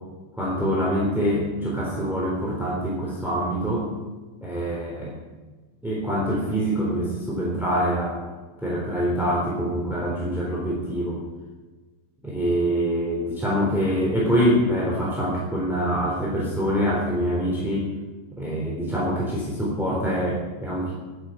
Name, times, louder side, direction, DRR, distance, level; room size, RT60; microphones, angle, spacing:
voice 1, 0.4-3.9 4.4-5.1 5.8-8.2 8.6-11.2 12.2-17.9 18.3-20.9, equal, ahead, -5 dB, 2.4 m, -25 dB
11.5 x 9.8 x 9.3 m, 1.3 s
omnidirectional pair, 5.9 m